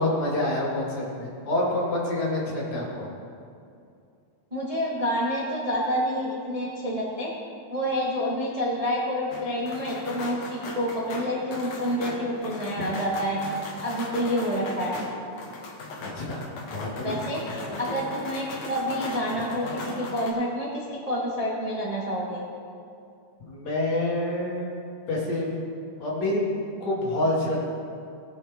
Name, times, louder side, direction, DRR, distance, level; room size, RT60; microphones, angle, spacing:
voice 1, 0.0-3.1 16.0-16.4 16.7-17.2 23.4-24.8 25.1-25.5 26.0-26.5 26.8-27.7, left 1 dB, 65° left, -5 dB, 3.6 m, -27 dB
voice 2, 4.5-7.3 7.7-13.4 13.8-15.0 17.0-17.4 17.8-22.4, equal, 20° right, -5 dB, 0.9 m, -28 dB
sound 1, 9.3-20.3, left 2 dB, 85° left, 2.9 m, -38 dB
19.0 x 8.0 x 3.7 m, 2.5 s
omnidirectional pair, 3.5 m